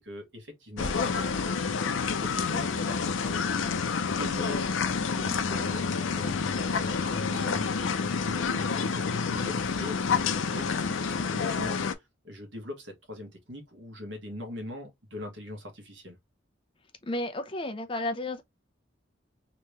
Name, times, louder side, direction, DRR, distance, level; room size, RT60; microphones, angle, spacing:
voice 1, 0.0-1.7 2.0-4.7 5.1-16.2, left 1 dB, 70° right, 1.3 m, -42 dB
sound 1, 0.8-11.9, left 5 dB, 85° left, 0.5 m, -28 dB
voice 2, 17.0-18.4, left 1 dB, 25° left, 0.5 m, -32 dB
3.0 x 2.8 x 3.2 m
head